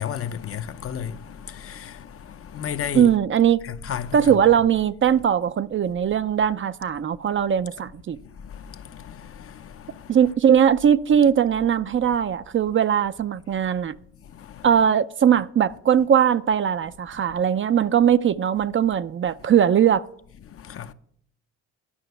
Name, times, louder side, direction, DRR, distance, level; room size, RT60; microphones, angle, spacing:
voice 1, 0.0-3.1 3.6-4.4 8.2-10.2 14.2-14.7 20.5-20.9, left 8 dB, 50° left, 0.7 m, -34 dB
voice 2, 2.9-3.6 4.1-8.2 10.1-14.0 14.6-20.0, right 8 dB, 40° right, 0.5 m, -20 dB
11.5 x 5.7 x 6.8 m
cardioid pair, 90°, 30 cm